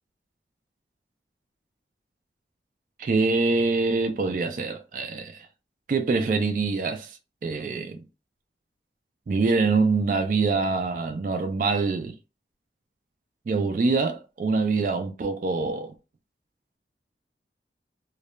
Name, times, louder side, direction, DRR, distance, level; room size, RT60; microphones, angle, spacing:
voice 1, 3.0-5.5 5.9-8.0 9.3-12.1 13.5-15.9, right 3 dB, 45° right, 0.3 m, -25 dB
2.3 x 2.1 x 2.9 m
head